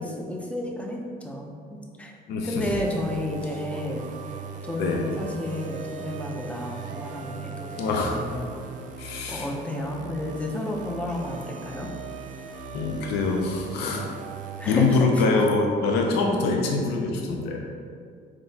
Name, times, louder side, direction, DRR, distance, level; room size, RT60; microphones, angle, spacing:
voice 1, 0.0-2.1 2.4-4.1 4.6-7.7 8.0-8.7 9.3-11.9 14.6-15.2, left 1 dB, 5° left, 0 dB, 0.5 m, -32 dB
voice 2, 2.3-2.7 4.8-5.0 7.8-8.2 9.0-9.5 12.7-14.0 14.6-17.6, left 3 dB, 80° left, 1 dB, 0.4 m, -24 dB
sound 1, 2.7-15.0, right 5 dB, 50° right, 0.4 m, -38 dB
4.0 x 3.1 x 2.7 m, 2.3 s
cardioid pair, 110°, 17 cm